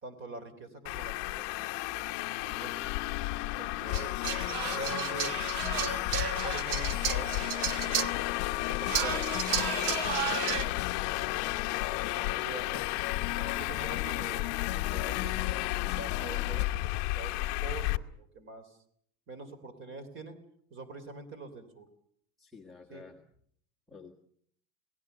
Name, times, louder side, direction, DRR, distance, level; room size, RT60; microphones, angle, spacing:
voice 1, 0.0-2.8 3.6-4.1 4.7-6.1 6.4-8.1 8.6-9.9 10.5-11.1 12.1-12.8 13.3-15.6 15.9-18.8 19.3-20.4 20.7-21.9 22.9-23.0, right 3 dB, 25° right, 12 dB, 3.2 m, -45 dB
Traffic noise roadway noise, 0.9-18.0, left 19 dB, 45° left, 0.9 m, -33 dB
voice 2, 3.4-3.7 12.3-12.5 22.4-23.2 23.9-24.1, left 4 dB, ahead, -2 dB, 1.5 m, -51 dB
sound 1, 3.9-16.6, left 18 dB, 80° left, 0.9 m, -39 dB
sound 2, 3.9-8.2 8.9-10.6, right 8 dB, 45° right, 1.2 m, -33 dB
28.0 x 19.0 x 6.7 m, 0.66 s
supercardioid pair, 165°, 50 cm